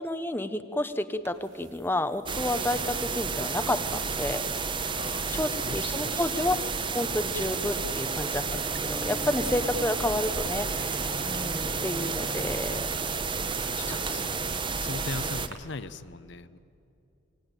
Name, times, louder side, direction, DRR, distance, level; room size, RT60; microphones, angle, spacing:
voice 1, 0.0-4.4 5.3-6.6 6.9-12.9 13.9-14.0 14.3-14.4, left 1 dB, 10° left, 10 dB, 0.7 m, -30 dB
sound 1, 1.2-15.5, right 9 dB, 65° right, 2.8 m, -45 dB
sound 2, 2.3-15.5, right 4 dB, 25° right, 0.9 m, -31 dB
voice 2, 4.9-5.8 6.0-6.1 13.7-14.3 14.7-16.6, left 3 dB, 60° left, 14 dB, 0.7 m, -39 dB
Bowed string instrument, 8.4-13.1, equal, 25° left, 1.7 m, -42 dB
26.5 x 20.0 x 9.0 m, 2.6 s
head